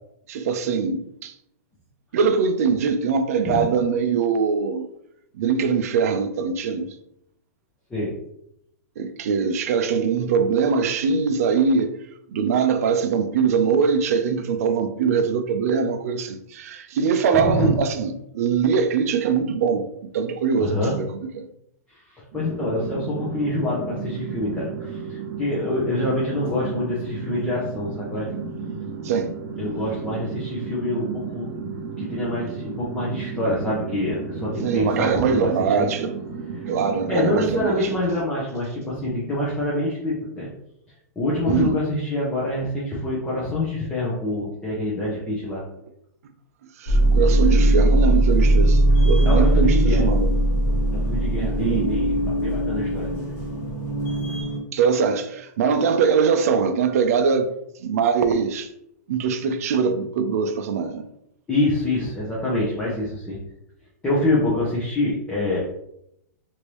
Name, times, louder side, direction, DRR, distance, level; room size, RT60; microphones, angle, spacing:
voice 1, 0.3-1.3 2.1-4.9 5.4-6.9 9.0-12.0 12.3-21.1 21.3-21.4 29.0-29.3 34.6-36.1 36.7-37.8 41.5-41.8 46.8-50.3 51.4-51.9 54.7-57.5 57.8-58.7 59.1-61.1, right 6 dB, 60° right, 0.4 m, -22 dB
voice 2, 17.3-17.7 20.6-20.9 21.9-28.3 29.6-31.5 32.0-35.9 37.1-40.5 41.2-45.6 49.3-50.1 50.9-53.1 61.5-63.4 64.0-65.6, left 1 dB, 10° left, 0.6 m, -26 dB
sound 1, 22.3-37.7, right 5 dB, 35° right, 0.9 m, -33 dB
sound 2, 46.9-54.6, right 1 dB, 40° left, 1.2 m, -19 dB
3.2 x 2.6 x 3.0 m
supercardioid pair, 165°, 9 cm